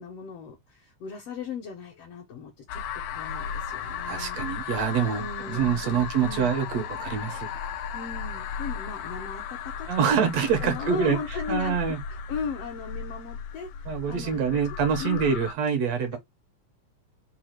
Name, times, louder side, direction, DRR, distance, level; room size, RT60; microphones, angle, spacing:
voice 1, 0.0-2.8 3.1-4.4 5.1-6.5 7.9-10.1 10.6-14.4 15.0-15.2 16.0-16.2, left 5 dB, 70° left, 1.5 m, -37 dB
sound 1, 2.7-15.5, left 7 dB, 90° left, 1.3 m, -35 dB
voice 2, 4.1-7.5 9.9-11.2 11.5-12.0 13.9-16.2, right 7 dB, 70° right, 1.8 m, -25 dB
4.9 x 2.4 x 4.3 m
omnidirectional pair, 3.5 m